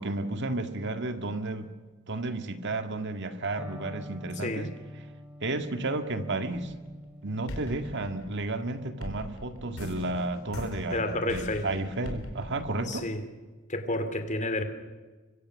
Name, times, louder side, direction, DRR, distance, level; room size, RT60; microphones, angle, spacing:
voice 1, 0.0-1.7 2.1-4.7 5.4-6.8 7.2-13.0, right 2 dB, 55° right, 8 dB, 1.9 m, -32 dB
Electric guitar, 3.6-11.4, left 1 dB, 5° right, 2.6 m, -48 dB
voice 2, 4.4-4.7 10.9-11.7 12.8-13.2 13.7-14.6, left 1 dB, 35° left, 8 dB, 2.7 m, -30 dB
sound 1, 6.5-7.1 7.5-13.4, left 1 dB, 75° left, 4.2 m, -41 dB
25.0 x 24.0 x 6.4 m, 1.3 s
head